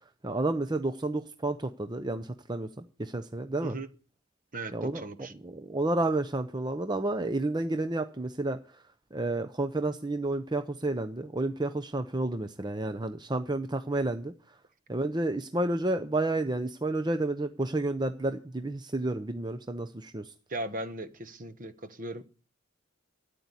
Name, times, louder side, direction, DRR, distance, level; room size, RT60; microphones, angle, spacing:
voice 1, 0.2-3.7 4.7-5.0 5.4-8.6 9.1-14.3 14.9-20.3, right 2 dB, 20° right, 0.7 m, -30 dB
voice 2, 3.6-3.9 4.5-5.3 20.5-22.3, right 2 dB, 40° right, 1.1 m, -38 dB
13.0 x 8.3 x 9.6 m
head